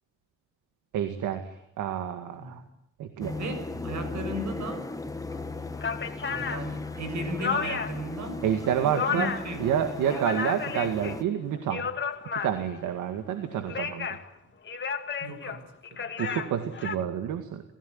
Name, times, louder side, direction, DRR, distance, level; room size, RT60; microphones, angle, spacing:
voice 1, 0.9-2.6 3.0-3.4 8.4-9.3 9.6-11.9 12.3-14.2 16.2-17.6, right 9 dB, 85° right, 8 dB, 2.0 m, -29 dB
sound 1, 3.2-11.2, left 3 dB, 10° left, 1.8 m, -37 dB
voice 2, 3.3-4.9 6.2-8.4 8.8-9.7 15.2-15.6 15.9-16.1, right 1 dB, 65° right, 10 dB, 6.7 m, -36 dB
sound 2, 5.3-5.4 5.7-8.1 8.5-9.6 9.9-11.2 11.5-12.8 13.5-14.3 14.7-17.0, left 6 dB, 40° left, 2.4 m, -33 dB
29.5 x 16.5 x 9.6 m, 0.81 s
cardioid pair, 90°, 30 cm